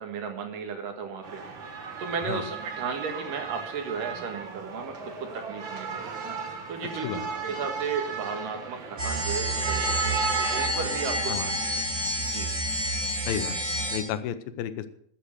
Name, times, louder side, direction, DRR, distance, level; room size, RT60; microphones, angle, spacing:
voice 1, 0.0-1.4 2.0-4.9 5.5-6.0 6.7-11.4 12.3-12.5, right 6 dB, 65° right, 5 dB, 3.3 m, -34 dB
sound 1, 1.2-10.7, right 6 dB, 50° right, 1.5 m, -35 dB
sound 2, 9.0-14.0, right 1 dB, 20° right, 6.1 m, -28 dB
voice 2, 13.3-13.6 13.9-14.9, left 10 dB, 80° left, 12 dB, 2.5 m, -32 dB
13.5 x 8.4 x 6.6 m, 0.66 s
omnidirectional pair, 4.2 m